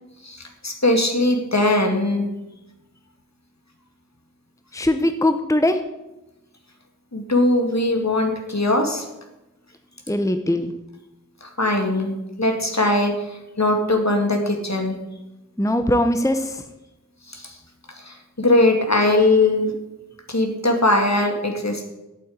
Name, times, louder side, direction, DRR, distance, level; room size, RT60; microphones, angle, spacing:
voice 1, 0.2-2.3 7.1-9.1 11.4-15.0 17.3-17.6 18.0-19.7 20.3-21.9, left 2 dB, 55° left, 3 dB, 2.2 m, -20 dB
voice 2, 4.7-5.8 10.1-10.7 15.6-16.6, left 1 dB, 10° left, 8 dB, 0.8 m, -21 dB
8.8 x 8.6 x 8.7 m, 0.97 s
wide cardioid pair, 45°, 32 cm